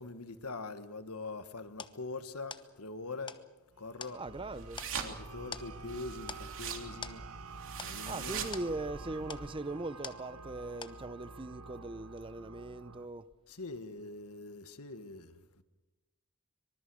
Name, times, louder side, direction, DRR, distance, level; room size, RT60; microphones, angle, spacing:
voice 1, 0.0-3.4 3.8-4.2 5.0-7.2 7.8-8.5 13.5-15.6, left 3 dB, 85° left, 1.6 m, -43 dB
sound 1, 1.8-10.6 10.8-11.4, left 5 dB, 20° left, 1.0 m, -49 dB
sound 2, 3.7-13.1, right 4 dB, 80° right, 1.1 m, -49 dB
voice 2, 4.1-4.8 8.1-13.3, right 2 dB, 25° right, 0.7 m, -40 dB
sound 3, 4.3-9.5, right 6 dB, 60° right, 3.2 m, -43 dB
25.0 x 23.5 x 6.3 m
head